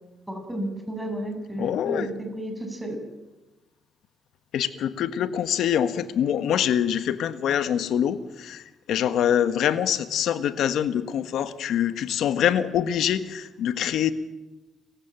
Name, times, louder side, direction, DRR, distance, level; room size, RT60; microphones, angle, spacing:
voice 1, 0.3-3.0, right 1 dB, 5° right, 4 dB, 6.9 m, -32 dB
voice 2, 1.6-2.1 4.5-14.1, left 9 dB, 75° left, 11 dB, 1.5 m, -25 dB
29.5 x 15.5 x 9.1 m, 1.1 s
cardioid pair, 90°, 0 cm